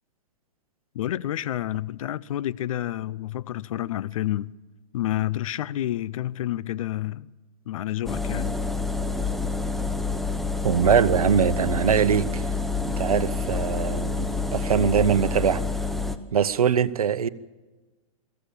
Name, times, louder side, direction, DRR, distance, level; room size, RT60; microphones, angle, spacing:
voice 1, 0.9-4.5 4.9-7.3 7.7-8.6, left 13 dB, 65° left, 0.6 m, -29 dB
sound 1, 8.1-16.2, left 3 dB, ahead, 0.9 m, -28 dB
voice 2, 10.6-12.5 12.9-15.6 16.3-17.3, right 7 dB, 90° right, 0.9 m, -22 dB
23.0 x 15.0 x 8.4 m
hypercardioid pair, 130°, 18 cm